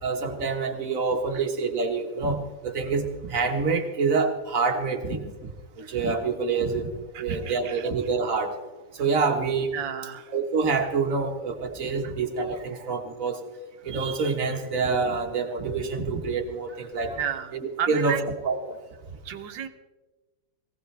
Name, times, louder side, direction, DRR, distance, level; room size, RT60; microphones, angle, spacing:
voice 1, 0.0-5.5 5.8-6.9 7.2-8.6 9.0-9.7 10.3-13.4 13.8-17.2 17.5-18.2 18.4-18.8, right 4 dB, 50° right, 4 dB, 1.8 m, -27 dB
voice 2, 7.1-7.8 9.7-10.3 17.2-17.5 17.8-18.2 19.2-19.7, right 8 dB, 85° right, 8 dB, 1.6 m, -32 dB
19.0 x 17.0 x 3.3 m, 1.2 s
omnidirectional pair, 1.9 m